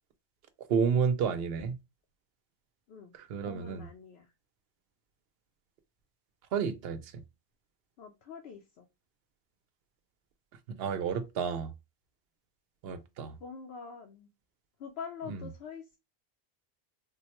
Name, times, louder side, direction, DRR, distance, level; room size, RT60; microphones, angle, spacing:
voice 1, 0.7-1.8 3.3-3.9 6.5-7.1 10.8-11.7 12.8-13.3 15.3-15.4, right 6 dB, 70° right, 0.8 m, -30 dB
voice 2, 3.5-4.3 8.0-8.9 13.4-14.3 14.8-16.0, left 6 dB, 70° left, 0.8 m, -45 dB
3.7 x 2.2 x 2.9 m
omnidirectional pair, 1.1 m